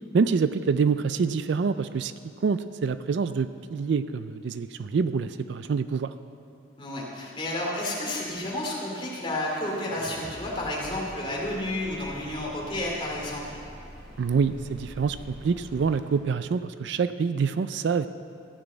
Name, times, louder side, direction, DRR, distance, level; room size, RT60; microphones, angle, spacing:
voice 1, 0.1-2.1 2.4-6.1 14.2-18.1, right 5 dB, 60° right, 12 dB, 0.4 m, -26 dB
voice 2, 6.8-13.6, left 1 dB, 25° left, -4 dB, 2.6 m, -31 dB
sound 1, 9.5-16.2, equal, 35° right, 3.4 m, -44 dB
15.0 x 6.2 x 7.8 m, 2.4 s
head